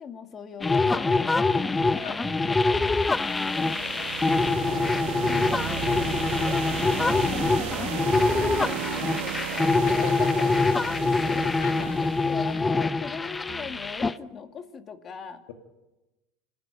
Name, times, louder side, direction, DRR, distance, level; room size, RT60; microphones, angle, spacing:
voice 1, 0.0-4.2 4.6-11.5 12.0-15.4, left 7 dB, 35° left, 7 dB, 2.3 m, -41 dB
sound 1, 0.6-14.1, left 3 dB, 15° left, 0.7 m, -25 dB
sound 2, 2.2-4.9 5.2-7.3 7.5-11.0 11.2-13.8, right 6 dB, 20° right, 4.4 m, -46 dB
sound 3, 2.8-12.6, right 14 dB, 70° right, 1.2 m, -35 dB
voice 2, 9.8-10.5 11.6-12.0, left 9 dB, 80° left, 5 dB, 2.7 m, -37 dB
26.0 x 15.5 x 9.1 m, 1.0 s
supercardioid pair, 105°, 0 cm